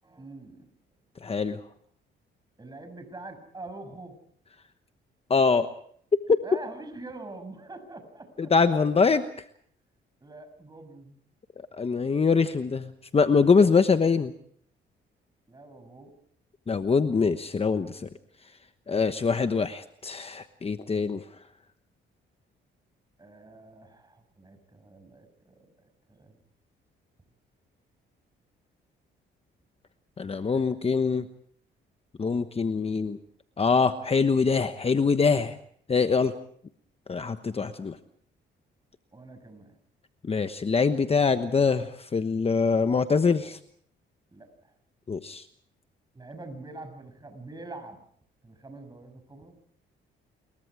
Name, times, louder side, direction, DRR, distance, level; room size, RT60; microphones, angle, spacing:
voice 1, 0.0-0.7 2.6-4.2 6.4-8.5 10.2-11.2 15.5-16.1 23.2-25.6 26.1-26.4 30.5-30.6 39.1-39.8 44.3-44.5 46.1-48.0 48.4-49.5, right 2 dB, 20° right, 8 dB, 6.4 m, -44 dB
voice 2, 1.2-1.6 5.3-5.7 6.3-6.4 8.5-9.2 11.8-14.3 16.7-18.1 18.9-21.2 30.2-31.2 32.2-33.2 33.6-35.6 35.9-36.3 37.1-38.0 40.2-43.6 45.1-45.4, left 5 dB, 30° left, 9 dB, 1.1 m, -24 dB
27.5 x 22.5 x 4.9 m, 0.62 s
cardioid pair, 90°, 20 cm